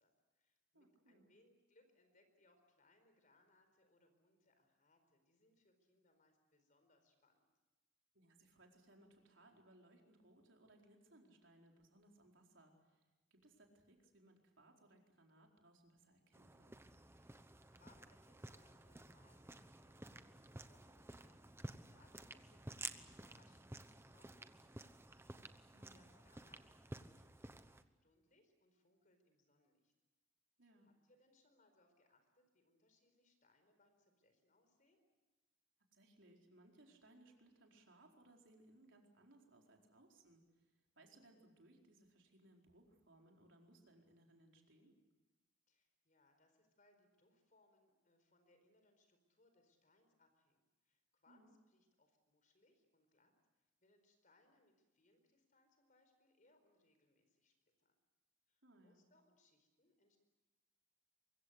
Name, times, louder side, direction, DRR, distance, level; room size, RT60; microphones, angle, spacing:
voice 1, 0.0-7.5 17.2-25.0 25.4-27.6 28.0-29.9 30.6-35.0 45.7-57.9 58.5-60.2, left 2 dB, 40° left, 7 dB, 4.5 m, -75 dB
voice 2, 0.7-1.3 8.1-16.8 25.7-26.1 30.6-30.9 35.9-45.0 51.3-51.5 58.6-59.0, right 1 dB, 70° right, 1 dB, 4.5 m, -67 dB
sound 1, 16.3-27.8, right 2 dB, 15° right, 1.0 m, -53 dB
24.5 x 22.5 x 8.1 m, 1.1 s
head